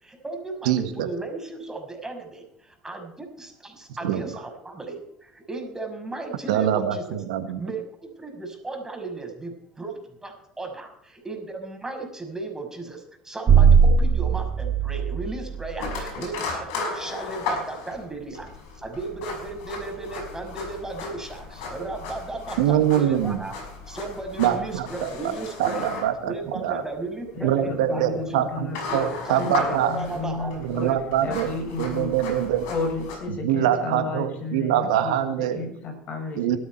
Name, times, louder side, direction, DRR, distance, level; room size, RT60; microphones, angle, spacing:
voice 1, 0.0-7.2 7.6-18.5 18.8-23.6 23.9-25.9 26.2-28.4 28.9-31.0, right 3 dB, 15° right, 3 dB, 6.1 m, -35 dB
voice 2, 0.6-1.1 4.0-4.2 6.5-7.6 22.6-23.4 24.4-26.3 26.6-26.8 27.4-30.0 30.6-31.5 31.8-32.7 33.4-35.6 36.4-36.6, right 10 dB, 75° right, 9 dB, 1.5 m, -24 dB
sound 1, 13.5-15.9, right 6 dB, 40° right, 1.5 m, -19 dB
sound 2, 15.8-33.2, left 4 dB, 70° left, 6.0 m, -35 dB
voice 3, 27.3-30.9 31.2-32.1 32.7-36.6, left 3 dB, 45° left, 4 dB, 6.4 m, -33 dB
18.5 x 13.0 x 4.5 m, 0.71 s
hypercardioid pair, 70°, 4 cm